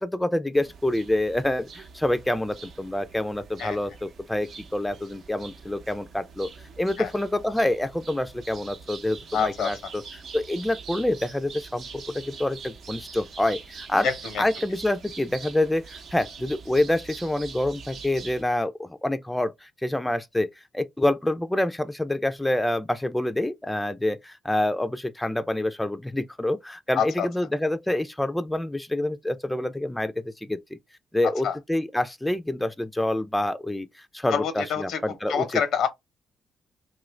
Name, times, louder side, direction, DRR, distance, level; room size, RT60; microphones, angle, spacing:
voice 1, 0.0-6.5 6.8-14.1 14.4-20.5 20.7-30.6 31.1-35.6, left 1 dB, 10° left, 0.4 m, -27 dB
sound 1, 0.5-18.4, right 5 dB, 65° right, 0.7 m, -44 dB
voice 2, 9.3-9.7 14.0-14.4 26.9-27.3 31.4-31.6 34.3-35.0 35.3-35.9, left 7 dB, 75° left, 0.8 m, -26 dB
2.9 x 2.5 x 3.2 m
supercardioid pair, 60°, 0 cm